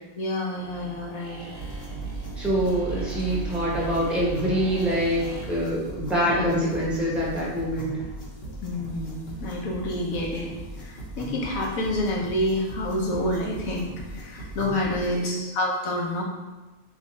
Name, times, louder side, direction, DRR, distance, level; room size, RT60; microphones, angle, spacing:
voice 1, 0.2-1.5 6.2-6.5 8.6-10.5 10.8-16.2, left 1 dB, 75° left, -1 dB, 1.2 m, -28 dB
sound 1, 0.5-5.6, right 4 dB, 30° right, 1.1 m, -37 dB
sound 2, 1.6-15.2, equal, 50° left, 1.0 m, -39 dB
voice 2, 2.4-8.0 15.1-15.5, equal, ahead, -6 dB, 0.9 m, -25 dB
3.6 x 2.4 x 4.0 m, 1.2 s
omnidirectional pair, 1.5 m